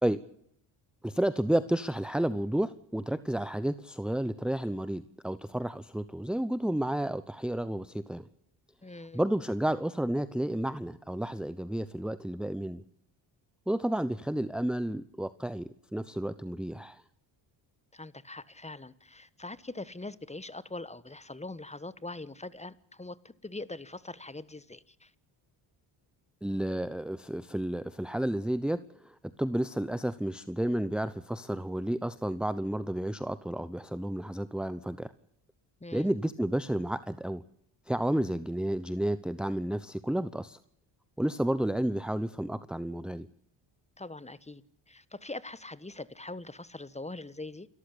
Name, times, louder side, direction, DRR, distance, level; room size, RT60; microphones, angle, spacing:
voice 1, 1.0-8.3 9.1-12.8 13.7-17.0 26.4-35.1 35.9-37.4 37.9-40.6 41.2-43.3, right 1 dB, ahead, 0.9 m, -31 dB
voice 2, 8.8-9.2 17.9-25.1 35.8-36.1 44.0-47.7, left 2 dB, 15° left, 1.3 m, -42 dB
28.5 x 14.0 x 8.6 m
cardioid pair, 70°, 49 cm